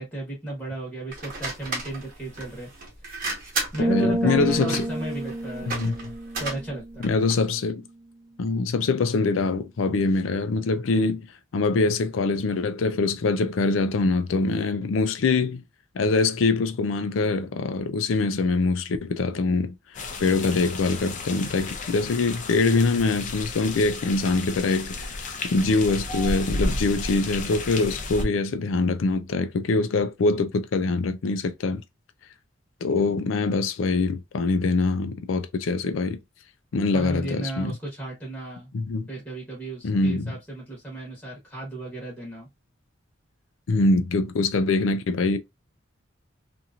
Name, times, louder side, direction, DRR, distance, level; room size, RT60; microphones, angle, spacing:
voice 1, 0.0-2.7 3.7-5.7 6.4-7.1 36.9-38.7 39.1-42.5, right 2 dB, 10° left, 1.0 m, -35 dB
sound 1, 1.1-7.5, right 3 dB, 45° right, 1.1 m, -34 dB
sound 2, 3.8-7.5, right 1 dB, 15° right, 0.3 m, -29 dB
voice 2, 3.9-4.9 5.7-6.1 7.0-7.8 8.4-11.3 11.5-15.6 15.9-31.8 32.8-36.2 36.7-37.7 38.7-39.1 39.8-40.4 43.7-45.4, left 3 dB, 85° left, 0.4 m, -24 dB
sound 3, 19.9-28.2, left 2 dB, 40° left, 0.6 m, -33 dB
2.9 x 2.5 x 2.4 m
head